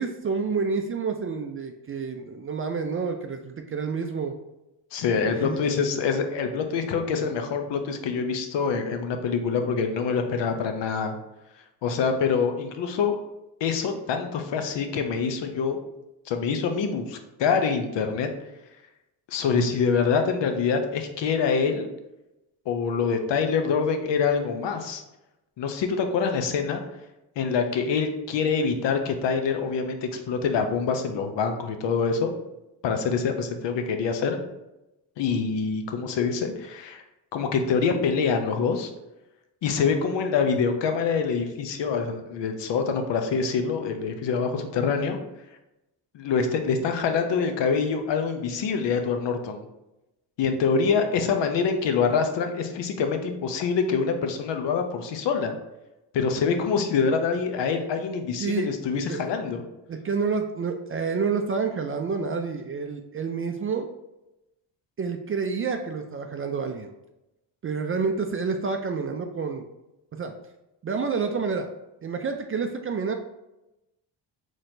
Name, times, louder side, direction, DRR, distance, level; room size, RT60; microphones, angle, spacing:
voice 1, 0.0-4.3 5.3-5.7 58.4-58.7 59.1-59.2 59.9-63.9 65.0-66.9 67.6-69.6 70.1-70.3 70.8-71.7 72.0-73.1, right 5 dB, 30° right, 5 dB, 0.4 m, -28 dB
voice 2, 4.9-11.2 11.8-13.2 13.6-15.8 16.3-18.3 19.3-21.9 22.7-25.0 25.6-26.8 27.4-32.3 32.8-34.4 35.2-37.0 37.3-38.9 39.6-45.2 46.1-49.6 50.4-55.6 56.1-59.6, left 5 dB, 65° left, 6 dB, 0.7 m, -25 dB
4.1 x 3.2 x 2.6 m, 0.93 s
supercardioid pair, 70°, 47 cm